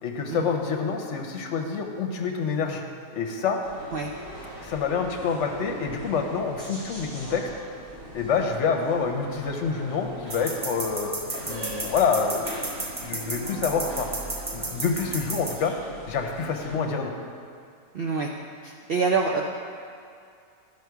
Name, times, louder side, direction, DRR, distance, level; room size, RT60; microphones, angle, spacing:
voice 1, 0.0-2.8 3.1-3.6 4.6-7.5 8.1-14.1 14.5-15.7 16.1-17.1, left 5 dB, 60° left, 2 dB, 1.0 m, -27 dB
sound 1, 3.6-16.8, right 1 dB, 85° right, 2.0 m, -40 dB
sound 2, 10.3-15.5, right 2 dB, 35° right, 0.8 m, -33 dB
voice 2, 17.9-18.3 18.6-19.4, right 4 dB, 65° right, 0 dB, 0.5 m, -26 dB
11.0 x 5.0 x 4.6 m, 2.3 s
omnidirectional pair, 1.5 m